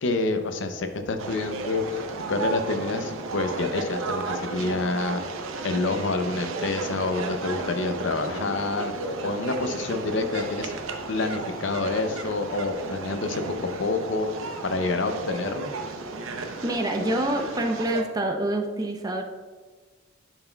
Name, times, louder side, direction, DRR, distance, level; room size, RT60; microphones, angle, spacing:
voice 1, 0.0-2.0 2.3-5.2 5.6-10.7 11.1-14.3 14.6-15.7, left 3 dB, 65° left, 7 dB, 0.6 m, -28 dB
sound 1, 1.2-18.0, right 3 dB, 90° right, 0.7 m, -33 dB
voice 2, 16.6-19.2, right 1 dB, 20° right, 3 dB, 0.5 m, -26 dB
11.0 x 5.9 x 2.3 m, 1.4 s
head